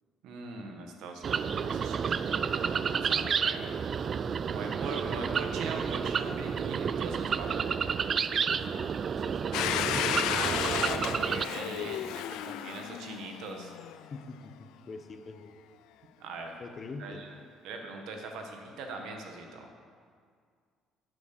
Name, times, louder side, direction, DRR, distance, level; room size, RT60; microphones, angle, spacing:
voice 1, 0.2-3.7 4.5-7.7 10.2-13.7 16.2-16.6 17.0-17.4 17.6-19.7, right 3 dB, 75° right, 3 dB, 1.5 m, -41 dB
sound 1, 1.2-11.5, right 6 dB, 45° right, 0.3 m, -30 dB
voice 2, 4.3-4.6 8.5-8.9 9.2-10.4 11.6-12.2 14.1-15.5 16.6-17.2, left 3 dB, 40° left, 7 dB, 1.0 m, -45 dB
Domestic sounds home sounds, 9.5-14.2, left 12 dB, 80° left, 0.4 m, -33 dB
11.5 x 6.3 x 6.8 m, 2.1 s
supercardioid pair, 80°, 0 cm